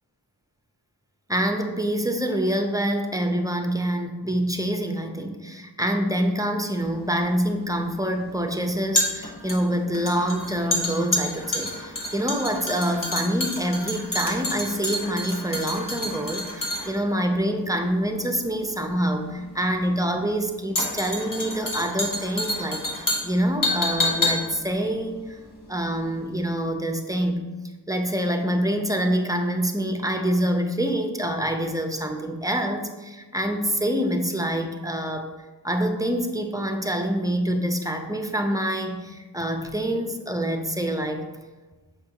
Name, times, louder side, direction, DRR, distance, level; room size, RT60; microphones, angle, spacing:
voice 1, 1.3-25.4 25.7-27.4 27.9-35.3 35.6-41.3, equal, 10° right, 4 dB, 0.5 m, -26 dB
sound 1, 6.8-26.1 26.3-26.5, left 1 dB, 45° left, 1.2 m, -29 dB
7.0 x 4.8 x 2.8 m, 1.2 s
wide cardioid pair, 65°, 44 cm